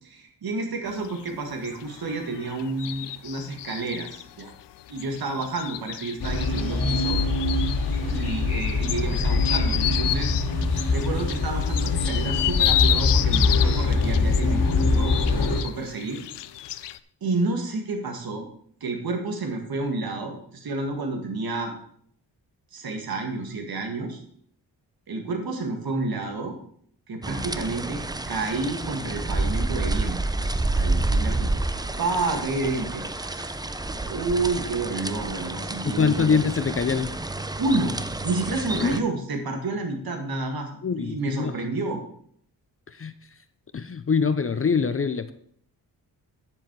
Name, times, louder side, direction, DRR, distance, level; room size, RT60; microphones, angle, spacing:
voice 1, 0.0-4.5 4.9-7.2 8.1-10.3 10.9-16.2 17.2-18.5 18.8-21.7 22.7-24.2 25.1-26.6 27.1-31.6 32.0-36.4 37.6-40.7 41.0-42.0, right 3 dB, 60° right, 3 dB, 1.9 m, -30 dB
sound 1, 0.9-17.0, left 13 dB, 80° left, 0.6 m, -31 dB
sound 2, 6.2-15.6, left 3 dB, 60° left, 2.4 m, -23 dB
sound 3, 27.2-39.0, right 2 dB, 10° right, 0.5 m, -29 dB
voice 2, 35.8-37.1 38.8-39.0 40.8-41.5 43.0-43.1 43.7-45.3, left 5 dB, 35° left, 12 dB, 0.6 m, -24 dB
9.7 x 7.4 x 4.7 m, 0.62 s
cardioid pair, 90°, 41 cm